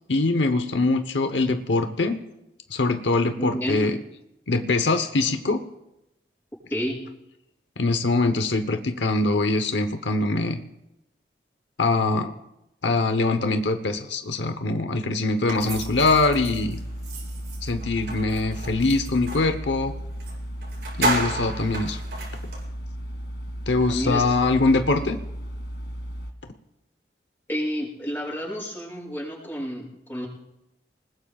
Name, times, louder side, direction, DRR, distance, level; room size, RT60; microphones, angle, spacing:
voice 1, 0.1-2.2 2.7-4.0 4.5-5.7 7.8-10.6 11.8-12.3 12.8-16.8 17.6-20.0 21.0-22.0 23.7-25.2, left 3 dB, 90° left, 7 dB, 1.0 m, -23 dB
voice 2, 3.4-4.0 6.7-7.0 23.9-24.2 24.8-25.2 27.5-30.3, equal, 10° left, -5 dB, 7.0 m, -30 dB
sound 1, 15.5-19.5 20.2-20.3 20.6-22.6, right 2 dB, 65° right, 6.8 m, -32 dB
sound 2, 15.7-26.3, equal, 65° left, 2.1 m, -35 dB
28.5 x 20.0 x 2.4 m, 0.90 s
head